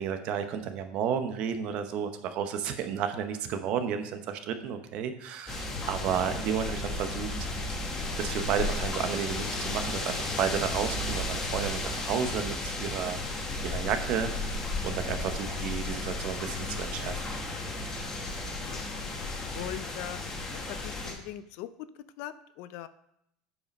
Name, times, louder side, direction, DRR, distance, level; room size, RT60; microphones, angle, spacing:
voice 1, 0.0-7.3 8.2-14.5 14.8-17.2, right 8 dB, 45° right, 8 dB, 0.8 m, -32 dB
sound 1, 5.5-21.1, left 2 dB, 20° left, 1.1 m, -34 dB
voice 2, 18.6-19.1 19.5-20.2 20.5-21.9 22.2-22.9, left 13 dB, 55° left, 14 dB, 0.4 m, -41 dB
8.3 x 5.0 x 5.3 m, 0.77 s
cardioid pair, 160°, 2 cm